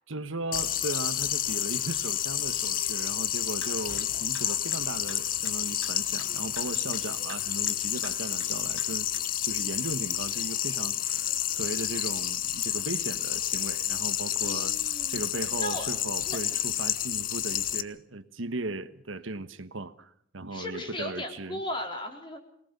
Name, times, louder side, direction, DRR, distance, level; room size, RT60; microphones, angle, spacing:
voice 1, 0.1-9.1 9.4-14.8 15.1-21.6, right 2 dB, 85° right, 11 dB, 1.4 m, -37 dB
sound 1, 0.5-17.8, left 11 dB, 45° left, 0.9 m, -30 dB
sound 2, 3.6-3.7 4.0-4.1 4.3-5.2 5.4-5.6 5.8-5.9 6.2-6.3 6.6-6.7 6.9-7.0 7.3-7.4 7.7-8.1 8.4-8.5 8.8-8.9 9.1-9.2, left 3 dB, 85° left, 6.0 m, -44 dB
voice 2, 14.4-15.2 15.6-15.9 16.3-16.4 20.5-22.4, left 1 dB, 25° left, 4 dB, 4.1 m, -36 dB
25.0 x 19.0 x 6.8 m, 0.69 s
head